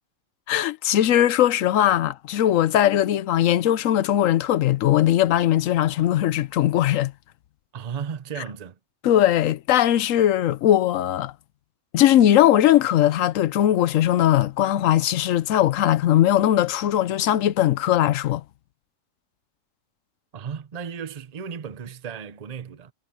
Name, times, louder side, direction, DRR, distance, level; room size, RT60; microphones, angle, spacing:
voice 1, 0.5-7.1 9.0-11.3 11.9-18.4, left 12 dB, 85° left, 1.0 m, -19 dB
voice 2, 7.7-8.8 20.3-22.9, right 7 dB, 35° right, 0.8 m, -34 dB
omnidirectional pair, 1.3 m